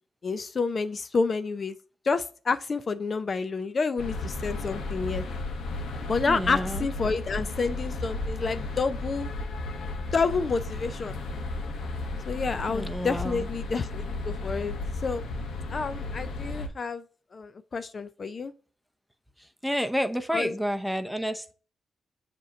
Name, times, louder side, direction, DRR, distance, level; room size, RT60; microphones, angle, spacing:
voice 1, 0.2-1.8 2.0-5.2 6.1-9.3 10.1-11.2 12.3-15.2 15.7-17.0 17.3-18.5 20.3-20.5, left 4 dB, 45° left, 0.4 m, -29 dB
sound 1, 4.0-16.7, left 2 dB, 85° left, 1.0 m, -34 dB
voice 2, 6.3-6.9 12.7-13.4 19.4-21.5, equal, ahead, 0.7 m, -30 dB
7.3 x 3.0 x 5.1 m
cardioid pair, 85°, 0 cm